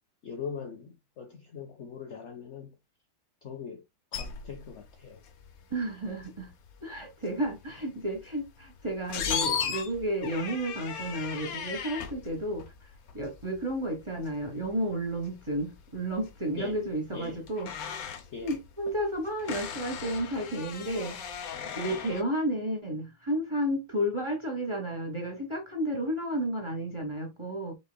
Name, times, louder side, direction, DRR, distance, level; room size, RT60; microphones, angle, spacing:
voice 1, 0.2-2.8 3.4-3.8 4.1-5.2 16.6-16.8 17.1-17.4 18.3-18.5, left 6 dB, 80° left, 0.6 m, -41 dB
sound 1, 4.1-22.2, left 7 dB, 60° left, 1.0 m, -38 dB
voice 2, 5.7-6.5 6.8-12.9 13.1-17.7 18.4-21.2 21.7-27.8, right 1 dB, 20° right, 0.8 m, -32 dB
5.4 x 4.0 x 2.2 m
omnidirectional pair, 2.0 m